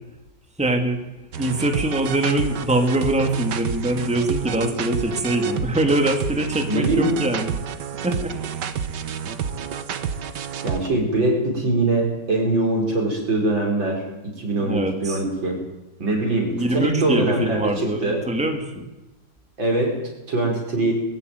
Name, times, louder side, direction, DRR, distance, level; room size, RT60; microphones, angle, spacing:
voice 1, 0.6-1.0 1.4-7.5 8.0-8.4 14.6-15.2 16.5-18.9, right 1 dB, 5° right, 4 dB, 2.4 m, -23 dB
sound 1, 1.3-10.9, right 7 dB, 65° right, 1.7 m, -29 dB
voice 2, 6.7-7.2 10.6-15.6 16.0-18.2 19.6-20.0 20.3-20.9, right 2 dB, 85° right, 1 dB, 5.8 m, -22 dB
21.0 x 14.5 x 9.6 m, 1.1 s
omnidirectional pair, 2.0 m